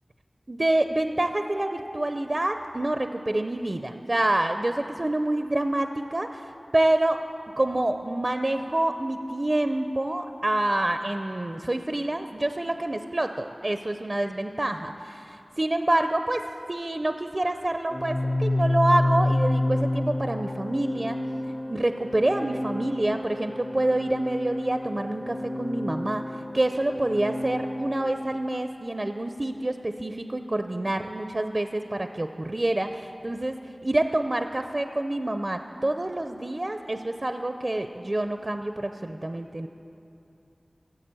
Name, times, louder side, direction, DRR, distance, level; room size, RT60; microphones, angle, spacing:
voice 1, 0.5-7.2 7.5-21.2 21.7-26.3 26.5-39.7, right 1 dB, 40° right, 7 dB, 0.5 m, -27 dB
Organ, 17.9-28.6, left 1 dB, 25° left, 0.6 m, -29 dB
15.5 x 7.5 x 7.6 m, 2.8 s
wide cardioid pair, 60°, 0 cm